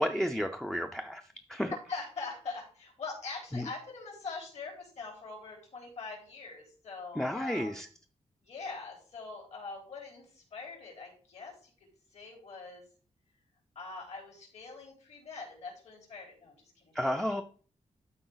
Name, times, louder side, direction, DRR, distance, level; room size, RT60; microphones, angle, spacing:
voice 1, 0.0-1.7 3.5-3.7 7.2-7.9 16.9-17.4, equal, 5° left, 7 dB, 0.4 m, -32 dB
voice 2, 1.9-7.8 8.4-11.7 12.1-12.8 13.8-16.9, left 4 dB, 65° left, -1 dB, 3.7 m, -43 dB
12.0 x 4.6 x 3.9 m, 0.43 s
wide cardioid pair, 180°, 12 cm